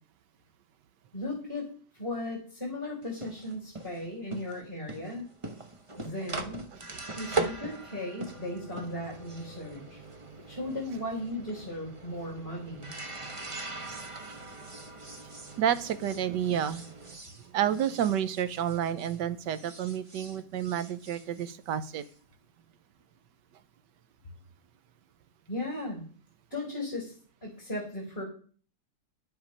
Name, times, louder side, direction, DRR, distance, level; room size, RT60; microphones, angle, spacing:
voice 1, 1.1-1.7 2.0-5.2 6.0-6.6 7.1-10.0 10.5-12.9 25.5-26.0 26.5-27.2 27.4-28.3, left 1 dB, 30° left, -3 dB, 4.3 m, -36 dB
sound 1, 3.0-19.2 19.5-22.1, right 3 dB, 25° right, 0.8 m, -41 dB
voice 2, 15.6-16.8 17.5-22.0, right 10 dB, 85° right, 13 dB, 1.4 m, -30 dB
11.0 x 8.0 x 5.4 m, 0.43 s
omnidirectional pair, 1.8 m